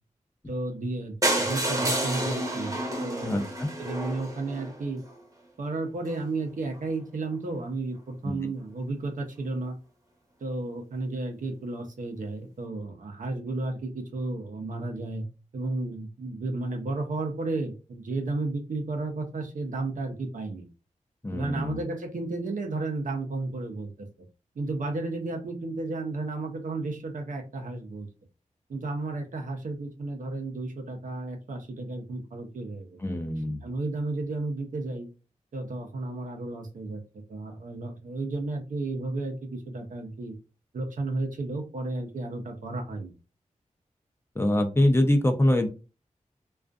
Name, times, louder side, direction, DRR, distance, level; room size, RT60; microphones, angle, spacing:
voice 1, 0.5-3.5 3.8-5.0 5.6-9.7 10.4-15.3 15.5-20.7 21.3-24.1 24.6-28.1 28.7-33.0 33.6-35.1 35.5-37.0 37.3-40.4 40.7-43.1, right 2 dB, 75° right, 3 dB, 0.6 m, -33 dB
sound 1, 1.2-5.1 5.7-5.8 6.1-6.2 6.5-6.6 6.7-6.8, right 1 dB, 25° right, 0.9 m, -29 dB
voice 2, 3.2-3.7 8.2-8.3 21.2-21.8 33.0-33.6 44.4-45.7, left 1 dB, 20° left, 5 dB, 0.5 m, -24 dB
2.4 x 2.3 x 2.3 m, 0.32 s
cardioid pair, 55°, 13 cm